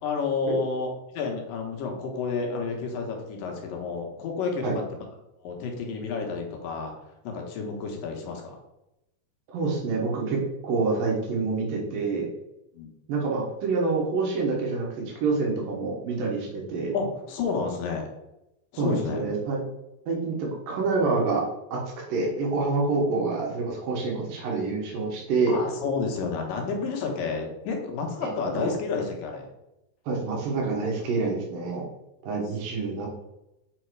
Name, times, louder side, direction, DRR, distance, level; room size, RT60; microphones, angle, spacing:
voice 1, 0.0-5.0 5.4-6.9 7.2-8.6 12.7-12.9 16.9-18.0 18.7-19.2 25.5-29.5, left 4 dB, 85° left, 1 dB, 2.9 m, -30 dB
voice 2, 9.5-12.3 13.1-16.9 18.8-19.6 20.1-21.4 21.7-25.6 28.2-28.7 30.1-31.8 32.2-33.1, right 3 dB, 85° right, -2 dB, 3.0 m, -27 dB
7.5 x 4.3 x 4.6 m, 0.90 s
omnidirectional pair, 3.9 m